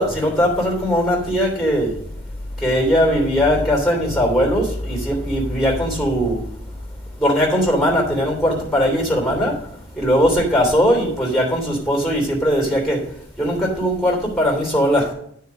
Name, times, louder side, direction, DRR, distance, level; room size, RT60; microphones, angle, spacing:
voice 1, 0.0-2.0 2.6-6.4 7.2-9.5 9.9-13.0 13.4-15.1, equal, ahead, -2 dB, 3.0 m, -19 dB
9.1 x 4.7 x 6.4 m, 0.67 s
head